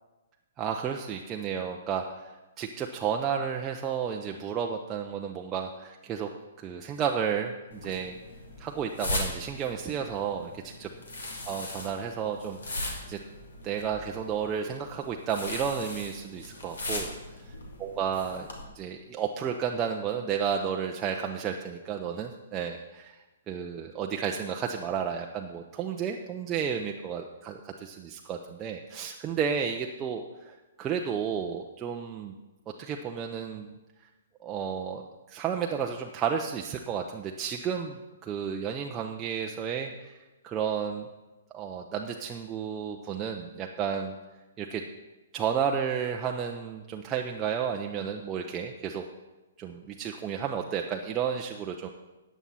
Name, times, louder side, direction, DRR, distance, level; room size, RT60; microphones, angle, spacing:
voice 1, 0.6-6.3 6.6-8.1 8.6-10.9 11.5-13.2 13.6-17.1 17.8-18.5 18.7-23.2 23.5-32.3 32.8-33.7 34.4-35.0 35.3-40.2 40.4-41.1 41.5-44.2 44.6-44.8 45.3-49.0 49.6-51.9, right 7 dB, 20° right, 1 dB, 0.7 m, -32 dB
sound 1, 7.7-18.6, left 2 dB, 65° left, 2.5 m, -39 dB
14.0 x 9.2 x 4.2 m, 1.1 s
figure-of-eight pair, 120°, 0 cm